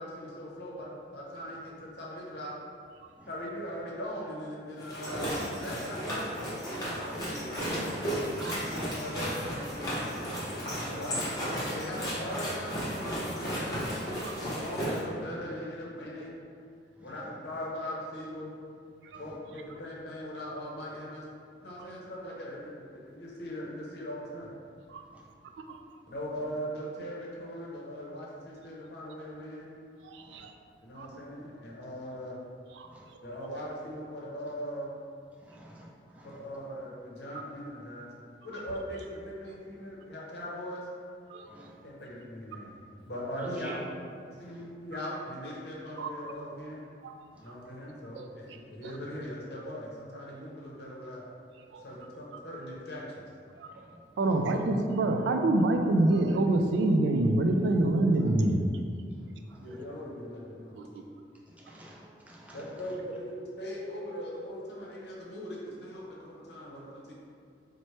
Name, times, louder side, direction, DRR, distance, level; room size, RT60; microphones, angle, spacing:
voice 1, 0.0-2.5 3.3-6.6 6.8-8.1 8.6-11.2 11.7-13.9 14.4-16.3 17.0-18.5 19.2-21.2 21.6-24.5 26.0-29.7 30.8-32.4 33.2-34.9 36.3-38.1 38.4-40.8 41.8-42.7 43.1-43.8 44.4-46.8 47.4-51.2 51.8-53.2 54.3-54.4 59.6-60.8 62.5-67.1, equal, 65° left, -4 dB, 0.7 m, -40 dB
sound 1, 4.8-15.0, equal, 20° left, 0.7 m, -34 dB
voice 2, 17.0-17.4 19.3-19.4 30.3-30.4 32.9-33.0 35.4-35.9 36.1-36.4 41.5-41.7 43.4-43.8 44.4-44.6 51.9-52.0 61.6-62.7, right 1 dB, 10° right, -5 dB, 0.4 m, -48 dB
voice 3, 30.0-30.5 31.0-31.1 32.7-32.9 41.3-41.5 46.0-46.1 47.0-47.2 47.5-47.6 48.2-48.6 48.8-48.9 51.7-51.8 52.3-52.4 53.6-53.7 54.2-58.7 60.8-61.0, right 2 dB, 85° right, 5 dB, 0.3 m, -27 dB
4.2 x 2.1 x 3.1 m, 2.3 s
head